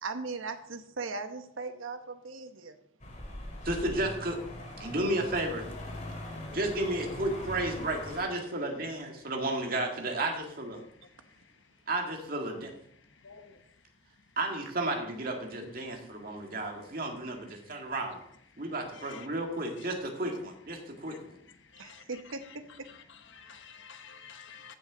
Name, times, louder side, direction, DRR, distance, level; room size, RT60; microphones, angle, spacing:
voice 1, 0.0-2.7 21.8-22.4, right 4 dB, 85° right, 1.1 m, -38 dB
sound 1, 3.0-8.2, left 1 dB, 35° left, 2.2 m, -41 dB
voice 2, 3.6-4.4 4.8-5.7 6.5-10.8 11.9-12.7 14.4-18.2 18.6-21.4, right 1 dB, 45° right, 2.0 m, -33 dB
voice 3, 13.2-13.6 18.9-19.3 21.1-21.2 21.7-22.0 23.3-24.7, left 6 dB, 70° left, 1.1 m, -49 dB
15.0 x 6.6 x 3.9 m
head